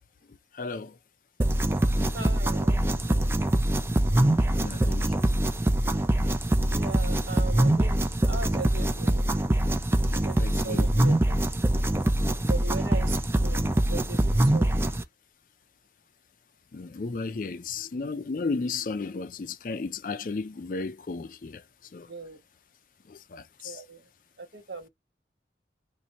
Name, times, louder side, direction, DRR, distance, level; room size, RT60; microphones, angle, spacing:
voice 1, 0.5-1.0 4.6-5.3 10.3-11.2 16.7-21.6 21.9-22.1 23.1-23.8, left 4 dB, 50° left, 0.4 m, -34 dB
sound 1, 1.4-15.0, right 1 dB, 15° right, 0.4 m, -24 dB
voice 2, 2.1-3.3 6.7-9.3 10.1-11.1 12.5-14.8 22.1-22.4 23.6-24.0 24.4-24.9, right 4 dB, 70° right, 1.2 m, -39 dB
2.8 x 2.6 x 4.0 m
head